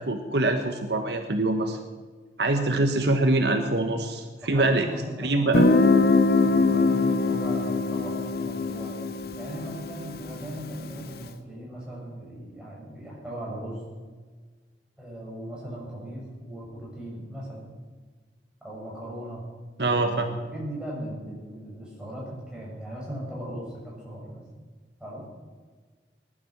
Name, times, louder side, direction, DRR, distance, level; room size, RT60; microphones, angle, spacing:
voice 1, 0.0-1.8 2.4-4.9 5.2-5.7 19.8-20.3, right 2 dB, 65° right, 6 dB, 1.3 m, -24 dB
voice 2, 4.4-9.0 9.4-13.8 15.0-17.7 18.6-19.4 19.8-24.4 25.0-25.2, right 1 dB, 5° right, -5 dB, 6.9 m, -38 dB
Guitar, 5.5-11.1, left 3 dB, 55° left, 0.8 m, -23 dB
20.0 x 11.5 x 6.0 m, 1.4 s
head